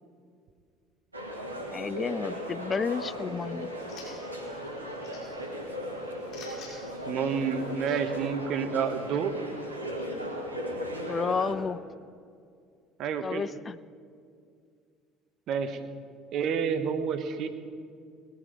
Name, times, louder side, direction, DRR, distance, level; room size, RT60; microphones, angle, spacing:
sound 1, 1.1-11.5, equal, 90° right, 1.6 m, -37 dB
voice 1, 1.7-3.7 11.0-11.8 13.2-13.8, left 5 dB, 30° left, 17 dB, 0.4 m, -31 dB
sound 2, 2.8-8.2, left 3 dB, 50° left, 5.1 m, -52 dB
voice 2, 7.1-9.3 13.0-13.4 15.5-15.8 16.3-17.5, right 6 dB, 50° right, 9 dB, 1.3 m, -29 dB
20.0 x 11.5 x 5.1 m, 2.2 s
figure-of-eight pair, 60°, 0 cm